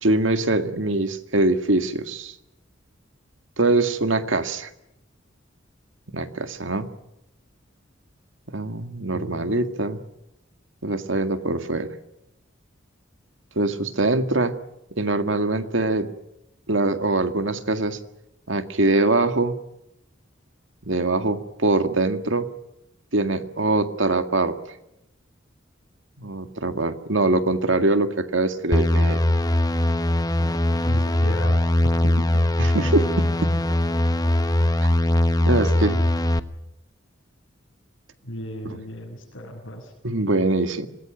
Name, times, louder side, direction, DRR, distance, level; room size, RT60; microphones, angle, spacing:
voice 1, 0.0-2.4 3.6-4.7 6.1-6.9 8.5-10.0 10.8-11.9 13.6-14.6 15.0-16.1 16.7-18.0 18.5-19.6 20.9-22.5 23.1-24.7 26.2-29.2 32.6-33.5 34.8-34.9 35.4-36.0 38.6-38.8 40.0-40.9, right 2 dB, 80° right, 8 dB, 2.0 m, -23 dB
voice 2, 9.1-9.6 30.9-31.5 31.8-32.4 38.3-39.9, equal, 90° left, -3 dB, 6.7 m, -35 dB
sound 1, 28.7-36.4, left 1 dB, 20° left, 1.0 m, -21 dB
26.0 x 19.5 x 9.1 m, 0.85 s
head